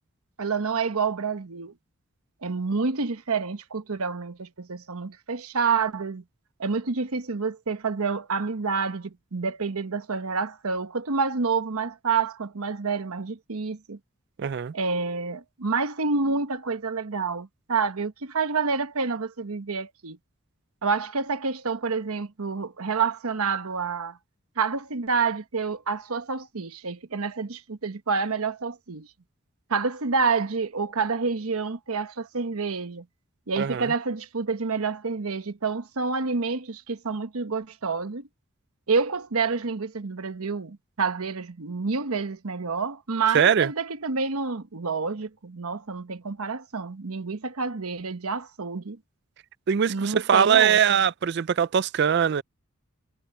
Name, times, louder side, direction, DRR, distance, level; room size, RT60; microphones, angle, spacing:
voice 1, 0.4-1.7 2.4-6.2 6.6-14.0 14.7-20.2 20.8-24.2 24.6-29.1 29.7-33.0 33.5-38.2 38.9-49.0 49.9-51.0, right 4 dB, 85° right, 1.0 m, -28 dB
voice 2, 14.4-14.7 33.6-33.9 43.3-43.7 49.7-52.4, right 7 dB, 50° right, 0.4 m, -21 dB
head